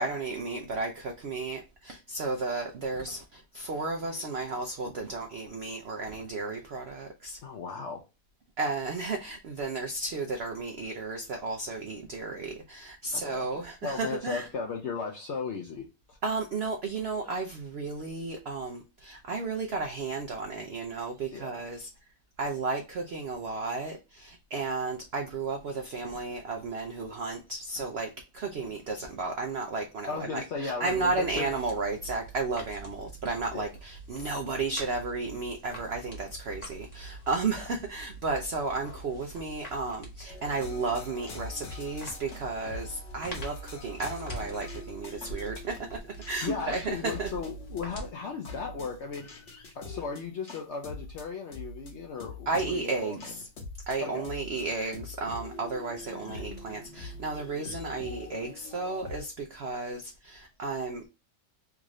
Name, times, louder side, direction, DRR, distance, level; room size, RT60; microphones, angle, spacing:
voice 1, 0.0-7.4 8.6-14.5 16.2-21.9 22.4-45.8 46.0-47.3 52.5-53.5 53.9-61.1, right 3 dB, 80° right, 0.5 m, -33 dB
voice 2, 7.4-8.0 13.1-16.2 21.3-21.6 30.1-31.5 33.5-33.7 46.4-49.3 49.7-53.2 54.1-54.3, left 5 dB, 65° left, 0.7 m, -36 dB
sound 1, 30.8-48.1, right 2 dB, 30° left, 1.0 m, -45 dB
sound 2, 40.3-59.2, left 3 dB, 50° left, 1.1 m, -44 dB
3.6 x 2.5 x 3.0 m
omnidirectional pair, 1.8 m